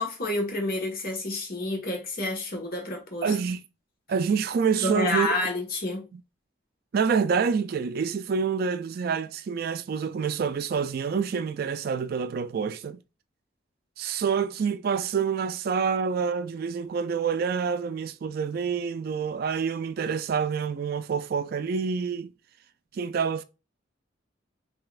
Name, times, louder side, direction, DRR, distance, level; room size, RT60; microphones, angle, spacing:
voice 1, 0.0-3.3 4.8-6.0, left 2 dB, 55° left, 1.4 m, -29 dB
voice 2, 3.2-3.6 4.1-5.3 6.1-6.2 6.9-13.0 14.0-22.3 22.9-23.4, right 6 dB, 55° right, 0.3 m, -27 dB
5.4 x 2.8 x 2.4 m
head